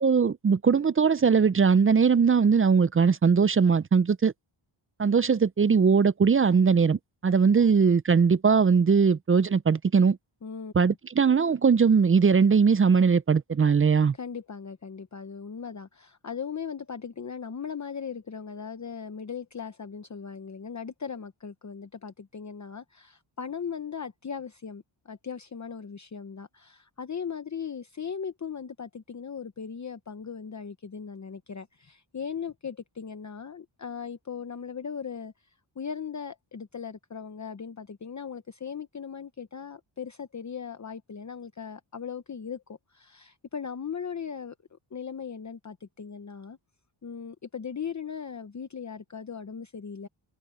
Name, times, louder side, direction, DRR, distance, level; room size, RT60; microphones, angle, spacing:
voice 1, 0.0-4.3 5.0-10.2 10.8-14.1, right 5 dB, 30° right, 0.4 m, -20 dB
voice 2, 10.4-10.7 14.1-44.5 44.9-46.6 47.0-50.1, left 6 dB, 35° left, 0.9 m, -38 dB
wide cardioid pair, 110°, 48 cm